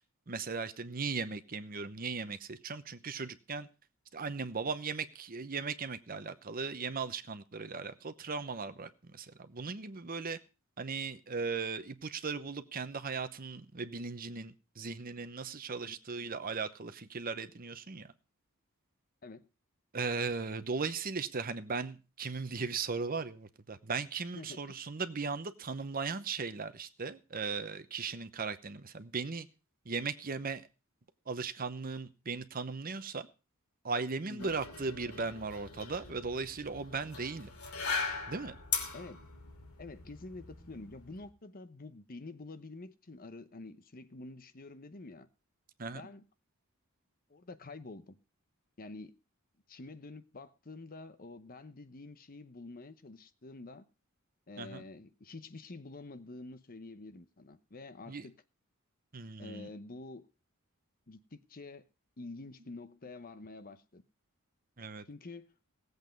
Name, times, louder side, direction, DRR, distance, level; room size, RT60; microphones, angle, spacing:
voice 1, 0.3-3.7 4.1-10.4 10.8-18.1 19.9-29.5 29.8-30.7 31.3-33.3 33.8-37.5 38.3-38.5 45.8-46.0 54.6-54.8 58.1-58.3 59.1-59.7 64.8-65.0, right 4 dB, 40° right, 0.9 m, -37 dB
voice 2, 24.3-24.7 34.3-34.5 38.9-39.2 39.8-45.3 45.9-46.2 47.3-48.2 48.8-49.1 49.7-53.9 54.5-58.3 59.4-60.3 61.1-61.9 62.2-64.0 65.1-65.5, left 3 dB, 40° left, 0.9 m, -48 dB
sound 1, 34.4-41.3, left 5 dB, 90° left, 2.8 m, -40 dB
17.5 x 8.1 x 5.3 m
head